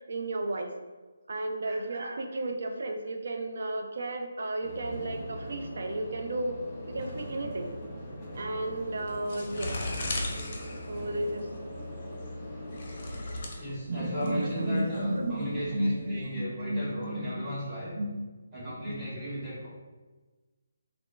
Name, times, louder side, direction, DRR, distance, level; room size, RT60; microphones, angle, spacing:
voice 1, 0.1-0.7 1.3-6.6 6.9-7.7 8.4-9.7 10.9-11.5 13.9-17.5 18.0-18.2 18.8-19.0, right 1 dB, 55° right, 4 dB, 0.4 m, -33 dB
sound 1, 4.6-13.4, equal, 15° left, 1.0 m, -41 dB
sound 2, 8.6-16.3, left 2 dB, 40° left, 0.5 m, -39 dB
voice 2, 13.6-17.9 18.5-19.7, equal, 10° right, -12 dB, 1.4 m, -36 dB
3.5 x 2.4 x 2.3 m, 1.3 s
figure-of-eight pair, 145°, 0 cm